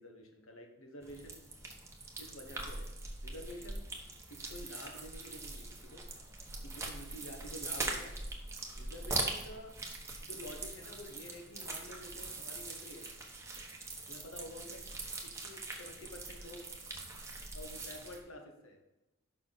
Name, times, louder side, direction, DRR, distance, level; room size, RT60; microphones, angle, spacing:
voice 1, 0.0-1.4 2.2-2.9 3.2-3.9 4.3-6.0 6.6-8.1 8.8-9.8 10.2-13.1 14.1-14.8 15.4-16.6 17.5-18.8, left 1 dB, 85° left, 4 dB, 1.3 m, -49 dB
sound 1, 1.0-18.2, right 2 dB, 15° right, 1.0 m, -42 dB
6.6 x 5.5 x 4.1 m, 1.0 s
head